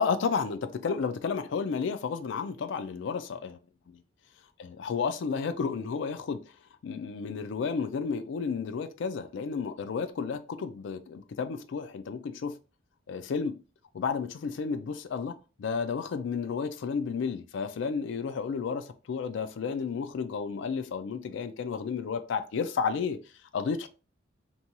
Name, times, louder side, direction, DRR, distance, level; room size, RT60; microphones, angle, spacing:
voice 1, 0.0-3.6 4.6-6.4 6.8-12.5 13.1-13.5 13.9-23.2 23.5-23.9, left 5 dB, 65° left, 0.3 m, -32 dB
2.6 x 2.2 x 2.8 m
head